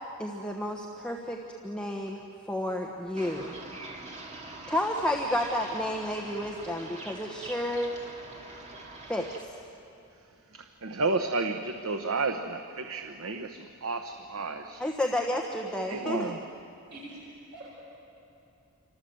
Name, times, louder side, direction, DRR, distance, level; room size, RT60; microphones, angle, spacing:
voice 1, 0.2-3.6 4.7-7.9 9.1-9.6 14.8-16.3, left 1 dB, 5° left, 0 dB, 1.2 m, -31 dB
sound 1, 3.2-9.4, right 2 dB, 30° right, 2.5 m, -44 dB
voice 2, 10.5-14.8 15.9-16.4, right 3 dB, 75° right, 6 dB, 1.0 m, -32 dB
voice 3, 16.9-17.7, right 2 dB, 55° right, -9 dB, 7.7 m, -45 dB
28.0 x 25.5 x 7.9 m, 2.7 s
head